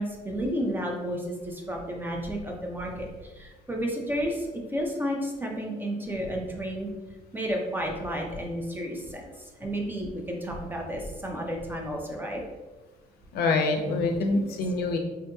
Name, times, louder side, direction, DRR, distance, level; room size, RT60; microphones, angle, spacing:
voice 1, 0.0-6.9 7.3-12.4 14.3-14.6, equal, 10° right, 0 dB, 0.5 m, -32 dB
voice 2, 13.3-15.0, left 3 dB, 65° left, 4 dB, 0.5 m, -25 dB
3.6 x 2.7 x 2.3 m, 1.2 s
cardioid pair, 110°, 17 cm